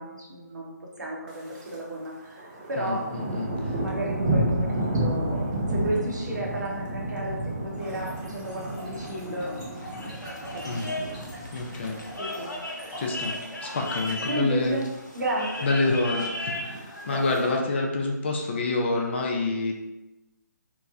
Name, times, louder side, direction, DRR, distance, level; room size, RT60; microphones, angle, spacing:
voice 1, 0.0-9.5 10.0-10.1 10.4-11.1 12.2-12.5 14.3-14.9 15.1-16.2 17.0-17.5, right 1 dB, 70° right, -3 dB, 0.8 m, -33 dB
Thunder, 1.3-1.8 2.1-12.5 12.8-13.2 13.6-14.1 14.3-14.4 14.6-14.7 15.1-15.7 16.4-17.4, right 1 dB, 25° right, 0.4 m, -31 dB
voice 2, 2.8-3.7 10.7-10.8 11.5-12.0 13.0-13.3 13.6-14.8 15.6-19.7, left 3 dB, 35° left, 1 dB, 0.4 m, -27 dB
Trickle dribble / Fill (with liquid), 7.7-14.4, equal, 5° left, 1.2 m, -44 dB
sound 1, 9.7-17.6, left 1 dB, 90° left, 0.6 m, -36 dB
3.0 x 2.1 x 2.4 m, 1.0 s
figure-of-eight pair, 145°, 10 cm